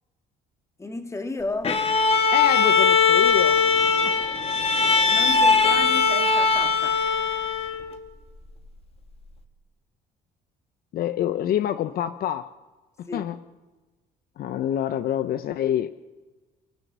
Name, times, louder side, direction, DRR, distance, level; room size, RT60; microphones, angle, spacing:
voice 1, 0.8-1.8 4.7-7.0 13.1-13.3, left 2 dB, 15° left, 6 dB, 2.5 m, -34 dB
Bowed string instrument, 1.6-7.9, left 5 dB, 35° left, 2.3 m, -20 dB
voice 2, 2.3-3.6 4.0-4.2 10.9-12.5 13.0-13.4 14.4-15.9, left 11 dB, 60° left, 12 dB, 0.8 m, -26 dB
30.0 x 14.0 x 6.9 m, 1.2 s
cardioid pair, 110°, 17 cm